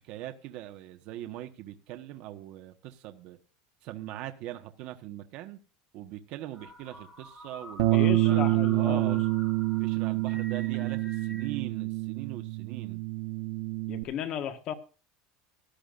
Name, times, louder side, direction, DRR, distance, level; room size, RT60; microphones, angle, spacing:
voice 1, 0.0-3.4 3.8-5.6 5.9-9.2 9.8-13.0, right 13 dB, 45° right, 1.4 m, -41 dB
sound 1, 6.5-11.5, equal, 5° left, 5.8 m, -48 dB
Bass guitar, 7.8-14.0, right 22 dB, 60° right, 0.9 m, -27 dB
voice 2, 7.9-9.2 13.9-14.7, left 9 dB, 30° left, 1.5 m, -34 dB
17.0 x 12.5 x 2.6 m
cardioid pair, 180°, 2 cm